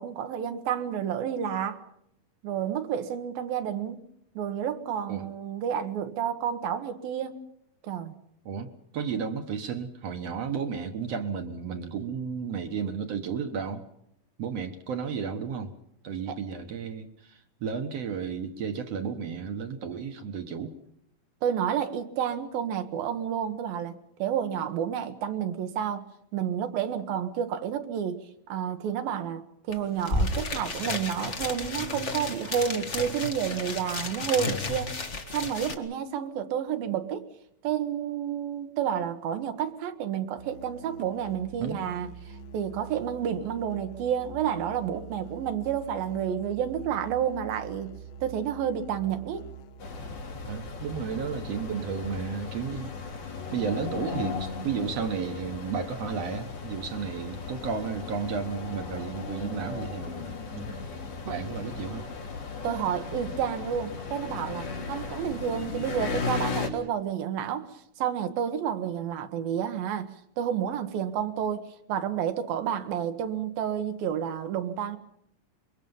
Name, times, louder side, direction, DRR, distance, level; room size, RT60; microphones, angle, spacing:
voice 1, 0.0-1.8 2.4-4.0 4.4-7.4 7.8-8.1 16.3-16.4 21.4-26.1 26.3-29.4 29.7-34.9 35.3-37.2 37.6-42.1 42.5-48.0 48.2-49.5 62.6-67.7 68.0-75.0, right 9 dB, 80° right, 3.1 m, -30 dB
voice 2, 8.9-13.8 14.4-15.7 16.0-20.8 41.6-41.9 50.4-53.0 53.5-60.8 61.2-62.0, right 6 dB, 55° right, 2.0 m, -33 dB
sound 1, 29.7-29.8 30.0-35.7, left 2 dB, 45° left, 0.8 m, -32 dB
Musical instrument, 40.4-52.4, right 5 dB, 65° left, 1.9 m, -46 dB
sound 2, 49.8-66.7, left 5 dB, 85° left, 5.1 m, -36 dB
25.0 x 22.5 x 5.5 m
omnidirectional pair, 4.2 m